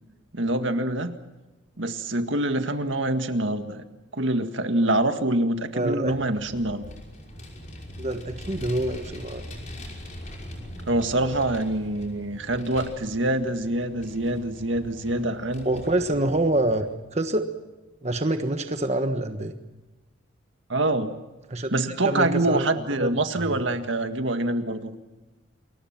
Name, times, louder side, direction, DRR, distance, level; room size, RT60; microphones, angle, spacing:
voice 1, 0.3-1.1 1.8-3.8 4.1-6.9 10.9-15.8 20.7-21.2 21.7-24.9, right 1 dB, 70° right, 7 dB, 1.9 m, -25 dB
voice 2, 5.7-6.2 8.0-9.4 15.6-17.5 18.0-19.6 21.5-21.7 22.0-23.1 23.4-23.6, right 1 dB, 35° right, 6 dB, 1.4 m, -26 dB
Vehicle, 6.1-16.9, left 1 dB, 40° left, 5.8 m, -41 dB
29.0 x 22.5 x 6.0 m, 1.1 s
head